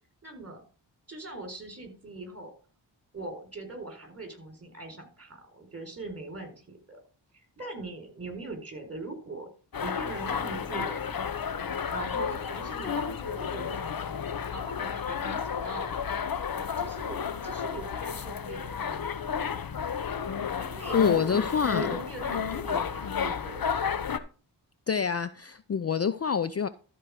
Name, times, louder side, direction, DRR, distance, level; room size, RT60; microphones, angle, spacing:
voice 1, 0.2-0.6 1.1-2.5 3.1-7.0 7.3-9.5 9.8-11.3 11.9-13.9 14.5-15.9 16.8-19.1 20.6-21.5 21.7-23.7, right 2 dB, 30° right, 4.3 m, -41 dB
sound 1, 9.7-24.2, left 7 dB, 50° left, 1.0 m, -32 dB
voice 2, 20.9-22.0 24.9-26.7, left 7 dB, 35° left, 0.5 m, -26 dB
13.0 x 4.6 x 4.9 m
cardioid pair, 50°, 46 cm